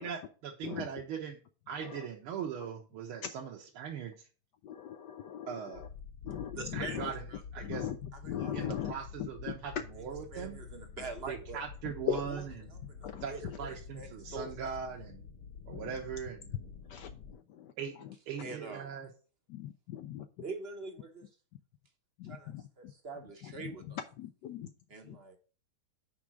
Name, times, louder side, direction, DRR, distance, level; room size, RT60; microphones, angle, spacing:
voice 1, 0.0-1.4 1.7-4.3 5.5-5.8 6.7-7.2 7.5-7.9 8.5-10.6 11.3-12.8 13.2-15.3 15.7-16.7 17.8-18.0 18.3-19.1, right 7 dB, 80° right, 0 dB, 1.8 m, -40 dB
voice 2, 4.6-5.9 6.2-7.1 7.6-8.0 8.3-8.9 9.2-9.3 12.1-12.2 13.0-13.2 15.7-15.9 16.9-17.7 19.5-20.3 22.2-22.6 23.6-23.7 24.2-24.7 25.0-25.2, left 10 dB, 85° left, 8 dB, 0.9 m, -39 dB
sound 1, 5.7-17.4, left 6 dB, 65° left, 2.7 m, -48 dB
voice 3, 6.6-7.7 8.1-8.5 10.3-11.6 12.3-12.4 12.7-14.5 18.4-18.9 20.4-21.3 22.2-24.0 24.9-25.4, right 3 dB, 45° right, 5 dB, 0.8 m, -44 dB
5.9 x 4.9 x 6.1 m, 0.37 s
omnidirectional pair, 2.4 m